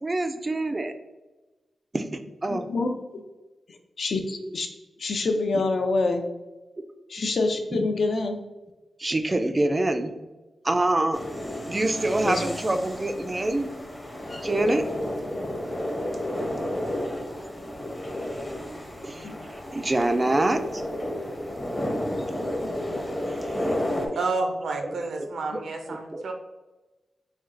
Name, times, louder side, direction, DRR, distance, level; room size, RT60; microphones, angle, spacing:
voice 1, 0.0-0.9 1.9-2.7 4.4-4.5 7.7-7.9 9.0-10.1 10.6-11.2 11.7-13.7 14.4-14.9 19.0-19.3 19.7-20.8 22.3-22.4 23.3-23.6 24.8-25.3 25.9-26.2, right 2 dB, 25° right, 7 dB, 0.3 m, -26 dB
voice 2, 2.5-3.2 4.0-4.7 5.0-6.2 7.1-8.4 12.2-12.4 19.2-19.4, left 3 dB, 55° left, 4 dB, 0.5 m, -26 dB
sound 1, 11.1-24.1, left 1 dB, 15° left, 0.7 m, -32 dB
voice 3, 24.2-25.8 26.2-26.3, right 3 dB, 75° right, 4 dB, 0.6 m, -29 dB
4.3 x 2.3 x 3.7 m, 1.1 s
wide cardioid pair, 140°, 0 cm